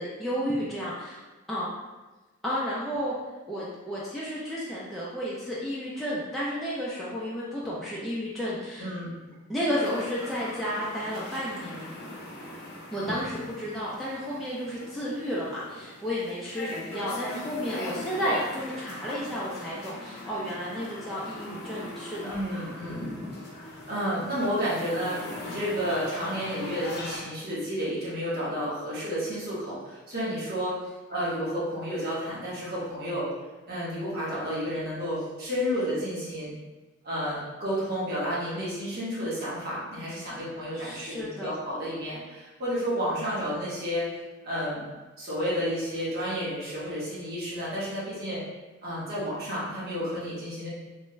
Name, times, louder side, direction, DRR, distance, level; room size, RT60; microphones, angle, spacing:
voice 1, 0.0-1.7 2.4-3.1 3.5-8.9 9.5-11.9 12.9-22.3 40.7-41.5, equal, ahead, -9 dB, 0.4 m, -32 dB
voice 2, 8.8-9.1 22.3-23.1 23.5-30.8 31.1-33.3 33.7-36.5 37.0-44.1 44.4-44.8 45.2-48.4 48.8-50.7, equal, 50° right, -8 dB, 1.2 m, -31 dB
sound 1, 9.7-27.2, left 1 dB, 55° left, 0.7 m, -40 dB
3.2 x 2.2 x 3.0 m, 1.2 s
head